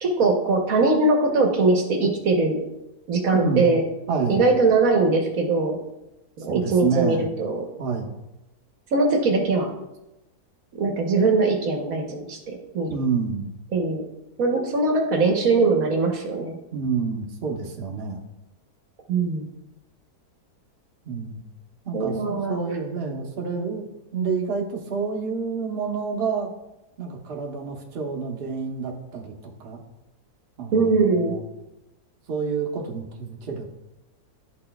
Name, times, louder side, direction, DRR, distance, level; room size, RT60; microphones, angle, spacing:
voice 1, 0.0-2.6 3.1-3.8 4.3-5.8 6.4-7.6 8.9-9.7 10.7-12.9 13.7-14.0 14.4-16.5 19.1-19.5 21.9-22.6 30.7-31.3, right 3 dB, 65° right, 2 dB, 1.2 m, -21 dB
voice 2, 3.3-3.8 4.1-4.4 6.5-7.3 7.8-8.1 12.9-13.5 16.7-18.2 21.0-21.4 21.8-26.5 27.0-29.3 29.6-29.8 30.6-31.4 32.3-33.8, right 5 dB, 45° right, 0 dB, 0.9 m, -28 dB
11.5 x 4.2 x 2.2 m, 0.93 s
omnidirectional pair, 1.7 m